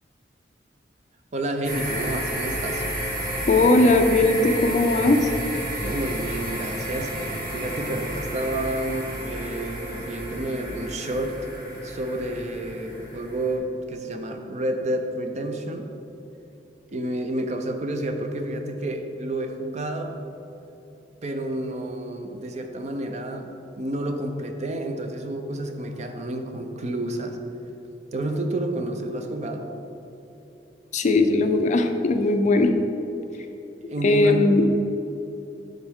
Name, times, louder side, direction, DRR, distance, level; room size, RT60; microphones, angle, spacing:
voice 1, 1.3-2.8 5.8-11.4 11.8-15.9 16.9-20.2 21.2-27.4 28.1-29.7 33.9-34.4, right 1 dB, 40° right, 5 dB, 0.6 m, -30 dB
sound 1, 1.6-13.6, equal, 55° right, 1.6 m, -31 dB
voice 2, 3.5-5.3 30.9-32.7 34.0-34.7, left 2 dB, 40° left, 6 dB, 0.4 m, -19 dB
11.5 x 3.9 x 3.6 m, 2.9 s
head